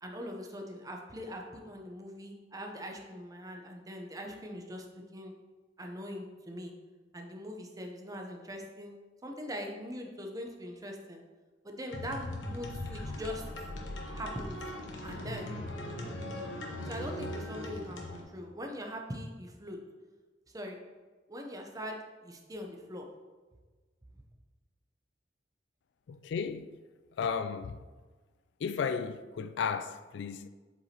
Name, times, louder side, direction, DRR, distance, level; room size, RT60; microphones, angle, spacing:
voice 1, 0.0-4.9 5.1-5.4 5.8-6.7 7.1-8.9 9.2-11.2 11.6-13.4 14.1-14.6 15.0-15.5 16.8-19.8 20.5-20.8 21.3-23.1, equal, 20° right, 0.7 m, -41 dB
sound 1, 11.9-18.2, left 1 dB, 85° left, 1.0 m, -39 dB
voice 2, 26.1-26.7 27.2-27.8 28.6-30.5, left 6 dB, 65° left, 0.3 m, -34 dB
7.9 x 4.6 x 2.9 m
head